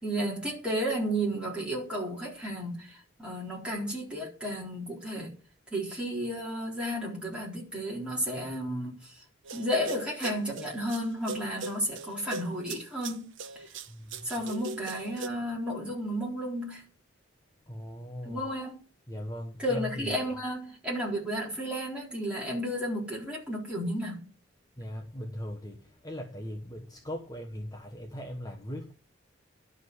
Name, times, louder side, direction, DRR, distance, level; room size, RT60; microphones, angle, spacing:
voice 1, 0.0-5.4 5.7-9.1 9.5-13.3 14.2-16.8 18.2-18.8 19.6-24.3, equal, 5° right, 4.1 m, -33 dB
sound 1, 9.5-15.3, right 3 dB, 75° right, 0.9 m, -40 dB
voice 2, 13.9-14.4 17.7-18.4 19.1-20.3 24.8-28.9, equal, 20° left, 1.2 m, -39 dB
11.5 x 5.1 x 8.1 m
head